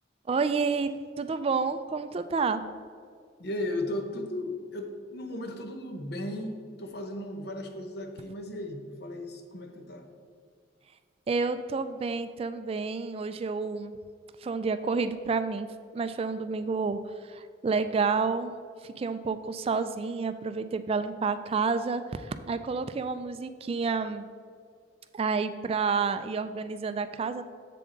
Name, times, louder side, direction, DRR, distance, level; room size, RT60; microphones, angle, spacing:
voice 1, 0.3-0.9 1.2-2.6 11.3-14.0 14.4-15.7 15.9-18.6 18.8-24.3 25.1-27.4, right 4 dB, 30° right, 11 dB, 0.3 m, -29 dB
voice 2, 3.4-10.1, left 1 dB, 60° left, 5 dB, 0.9 m, -36 dB
7.6 x 7.1 x 3.9 m, 2.1 s
head